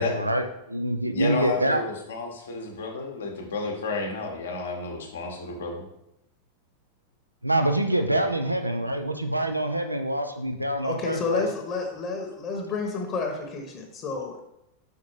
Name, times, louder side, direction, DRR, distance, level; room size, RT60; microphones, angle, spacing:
voice 1, 0.0-1.8 7.4-11.5, right 1 dB, 85° right, 6 dB, 0.5 m, -26 dB
voice 2, 1.1-5.9, left 3 dB, 65° left, 1 dB, 1.3 m, -31 dB
voice 3, 10.8-14.4, left 4 dB, 30° left, 2 dB, 1.2 m, -30 dB
5.8 x 4.5 x 4.6 m, 0.84 s
figure-of-eight pair, 90°, 0 cm